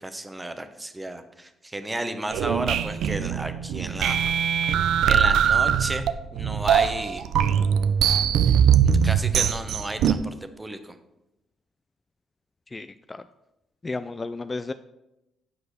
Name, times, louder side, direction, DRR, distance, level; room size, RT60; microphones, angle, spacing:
voice 1, 0.0-4.3 5.0-6.0 6.3-7.2 8.5-11.0, right 1 dB, 15° right, 8 dB, 0.9 m, -33 dB
sound 1, 2.3-10.1, right 8 dB, 80° right, 0.5 m, -21 dB
voice 2, 12.7-13.2 13.8-14.7, left 3 dB, 25° left, 11 dB, 0.3 m, -33 dB
8.5 x 4.8 x 6.6 m, 0.92 s
cardioid pair, 90°, 0 cm